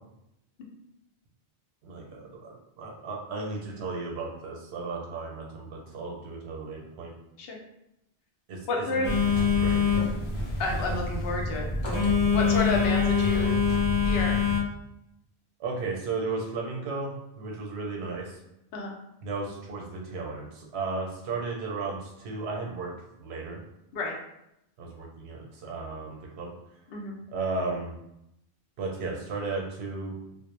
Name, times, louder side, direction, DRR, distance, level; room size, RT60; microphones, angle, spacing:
voice 1, 1.8-7.1 8.5-9.0 9.6-9.8 13.3-13.6 15.6-18.4 19.2-22.9 23.2-23.6 24.8-26.5 27.3-27.9 28.8-30.2, right 3 dB, 90° right, -1 dB, 0.8 m, -34 dB
voice 2, 8.7-9.1 10.6-11.7 12.3-13.6 14.0-14.4 18.7-18.9 23.9-24.2 26.9-27.2, left 2 dB, 70° left, 0 dB, 0.8 m, -30 dB
Telephone, 9.0-14.6, left 5 dB, 35° left, 0.5 m, -25 dB
2.0 x 2.0 x 3.0 m, 0.84 s
omnidirectional pair, 1.1 m